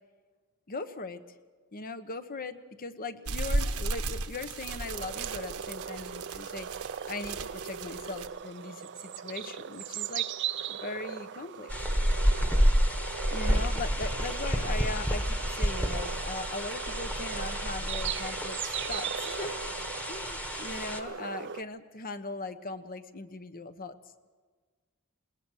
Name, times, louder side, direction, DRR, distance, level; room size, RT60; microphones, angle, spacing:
voice 1, 0.7-1.2 1.7-10.3 10.7-11.7 13.3-19.6 20.1-24.0, left 3 dB, 40° left, 11 dB, 1.0 m, -39 dB
sound 1, 3.3-8.3, right 2 dB, 75° right, 1.2 m, -35 dB
sound 2, 4.7-21.6, right 8 dB, 55° right, 0.6 m, -39 dB
sound 3, 11.7-21.0, equal, 5° left, 1.4 m, -29 dB
21.0 x 19.5 x 6.4 m, 1.4 s
head